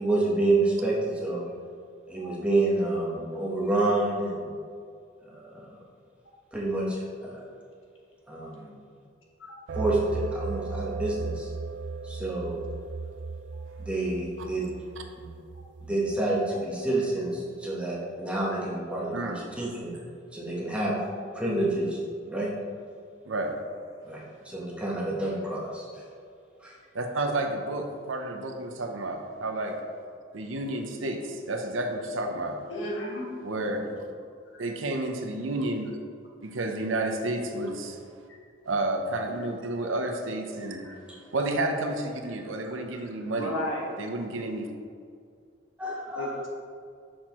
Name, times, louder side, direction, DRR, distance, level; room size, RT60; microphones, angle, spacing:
voice 1, 0.0-1.4 2.1-4.5 5.2-5.8 6.5-7.4 8.3-8.7 9.7-11.5 12.0-12.6 13.8-14.7 15.2-15.3 15.8-20.0 20.3-21.0 21.3-22.0 22.3-22.5 24.0-26.0 26.6-26.7 33.7-33.8 41.1-41.2 45.8-46.3, right 2 dB, 5° right, -5 dB, 1.1 m, -28 dB
sound 1, 9.7-16.2, right 4 dB, 60° right, 0.3 m, -36 dB
voice 2, 26.9-29.8 30.3-32.6 33.4-33.8 34.6-36.0 36.4-38.0 38.7-40.9 41.3-43.5 44.0-44.7, right 2 dB, 85° right, 4 dB, 0.7 m, -31 dB
voice 3, 32.7-33.3 40.8-40.9 43.4-43.9 46.1-46.5, left 1 dB, 80° left, -2 dB, 1.4 m, -33 dB
6.5 x 5.9 x 3.0 m, 2.2 s
head